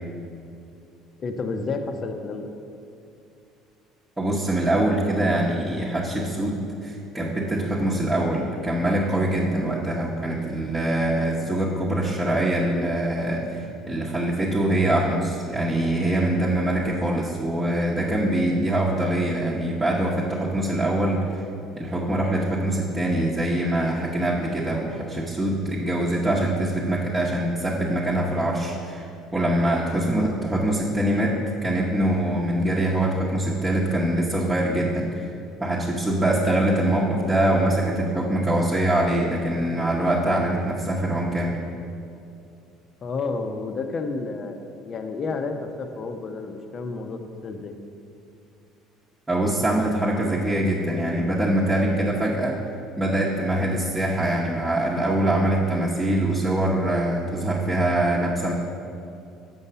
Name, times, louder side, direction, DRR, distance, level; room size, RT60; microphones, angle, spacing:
voice 1, 1.2-2.5 43.0-47.8, left 3 dB, 40° left, 6 dB, 0.8 m, -31 dB
voice 2, 4.2-21.4 21.7-35.3 35.6-41.6 49.3-52.6 53.0-58.5, right 1 dB, 10° right, -6 dB, 1.0 m, -24 dB
7.1 x 5.6 x 6.8 m, 2.6 s
supercardioid pair, 105°, 0 cm